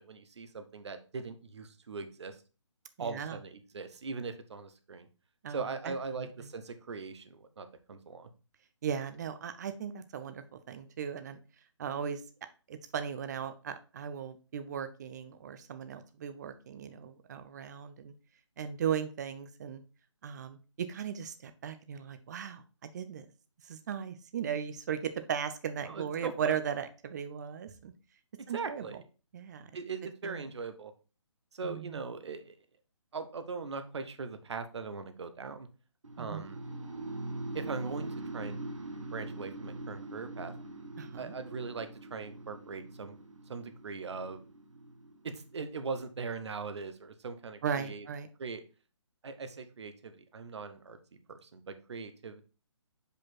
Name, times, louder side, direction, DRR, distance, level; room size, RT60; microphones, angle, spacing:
voice 1, 0.0-2.4 3.0-5.1 5.5-8.3 25.9-26.3 28.4-29.0 29.7-30.9 31.5-32.6 33.1-35.7 36.2-36.6 37.5-38.1 38.3-38.7 39.1-40.5 41.2-43.2 43.5-44.4 45.2-48.1 48.4-48.6 49.2-51.0 51.3-52.4, right 4 dB, 65° right, 9 dB, 0.9 m, -40 dB
voice 2, 3.0-3.4 5.4-6.5 8.8-11.4 11.8-12.2 12.7-18.1 18.6-19.8 20.2-23.3 23.6-27.9 28.5-29.0 29.3-29.7 30.2-30.5 31.6-32.0 36.2-36.4 41.0-41.3 47.6-48.3, right 8 dB, 35° right, 10 dB, 0.6 m, -37 dB
sound 1, 36.0-46.0, right 2 dB, 85° right, 1.2 m, -43 dB
5.1 x 4.5 x 4.2 m, 0.34 s
figure-of-eight pair, 150°, 16 cm